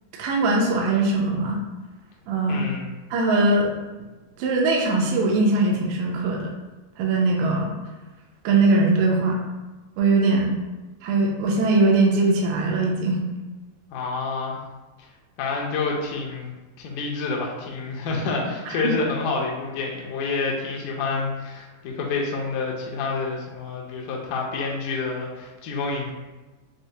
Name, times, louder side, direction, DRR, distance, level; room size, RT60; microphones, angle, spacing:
voice 1, 0.2-1.6 2.3-2.7 3.1-3.7 4.4-6.5 7.0-7.8 8.4-9.4 10.0-10.5 11.0-13.2 18.7-18.9, right 2 dB, 80° right, -1 dB, 2.0 m, -21 dB
voice 2, 2.4-2.9 13.9-14.6 15.4-26.1, left 4 dB, 80° left, -2 dB, 1.8 m, -28 dB
6.1 x 2.0 x 2.7 m, 1.1 s
omnidirectional pair, 4.0 m